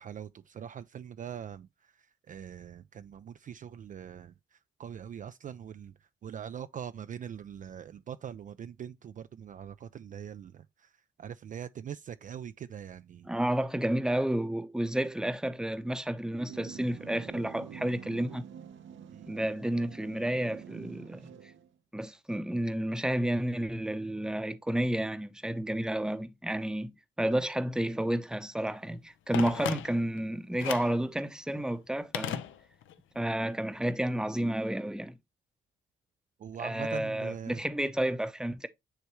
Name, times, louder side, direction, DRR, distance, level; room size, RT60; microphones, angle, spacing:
voice 1, 0.0-13.3 19.1-19.3 36.4-37.6, right 9 dB, 40° right, 0.4 m, -43 dB
voice 2, 13.3-18.4 19.3-21.2 21.9-26.9 27.2-32.4 33.1-35.2 36.6-38.7, right 1 dB, 5° right, 0.7 m, -31 dB
sound 1, 16.5-21.7, right 8 dB, 70° right, 0.9 m, -47 dB
Telephone, 29.3-30.2 30.6-31.0 32.1-33.0 33.3-33.4, left 11 dB, 80° left, 0.7 m, -36 dB
9.6 x 3.4 x 3.0 m
cardioid pair, 90°, 20 cm